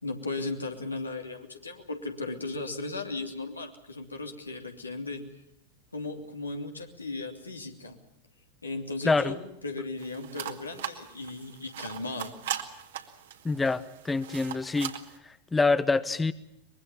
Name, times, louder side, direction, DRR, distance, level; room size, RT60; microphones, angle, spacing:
voice 1, 0.0-5.3 5.9-8.0 8.6-12.4, left 3 dB, 80° left, 4 dB, 2.9 m, -36 dB
sound 1, 10.0-15.2, right 11 dB, 60° right, 2.1 m, -39 dB
voice 2, 13.4-14.9 15.2-16.3, left 3 dB, 10° left, 16 dB, 0.8 m, -26 dB
24.0 x 22.0 x 7.1 m, 0.79 s
figure-of-eight pair, 90°, 0 cm